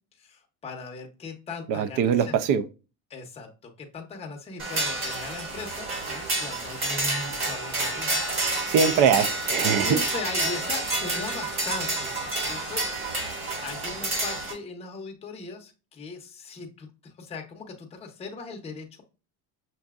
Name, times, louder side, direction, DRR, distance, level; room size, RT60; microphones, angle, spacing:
voice 1, 0.2-2.4 3.1-8.2 9.8-12.8 13.6-19.0, left 4 dB, 15° left, 0.6 m, -38 dB
voice 2, 1.7-2.6 8.7-10.0, right 7 dB, 65° right, 0.5 m, -22 dB
sound 1, 4.6-14.5, right 2 dB, 35° right, 1.6 m, -29 dB
5.7 x 2.6 x 2.3 m
cardioid pair, 155°, 35 cm